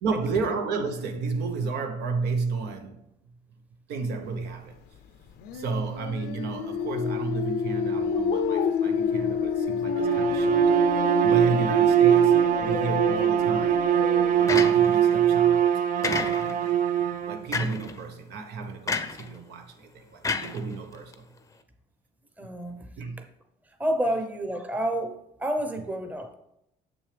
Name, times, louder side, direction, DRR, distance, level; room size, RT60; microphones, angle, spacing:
voice 1, 0.0-3.0 3.9-4.8 5.5-10.8 11.2-13.9 14.4-16.5 17.2-21.3 22.4-22.5 23.0-23.2, right 4 dB, 75° right, 0.9 m, -32 dB
sound 1, 5.4-14.7, left 6 dB, 85° left, 0.6 m, -29 dB
Bowed string instrument, 9.9-17.5, right 10 dB, 50° right, 0.4 m, -22 dB
sound 2, 14.5-15.1 16.0-16.7 17.5-17.9 18.9-19.3 20.2-21.1, left 4 dB, 20° left, 0.6 m, -30 dB
voice 2, 22.4-22.9 23.8-26.3, right 1 dB, 10° right, 0.8 m, -29 dB
6.9 x 6.1 x 3.4 m
cardioid pair, 110°, 17 cm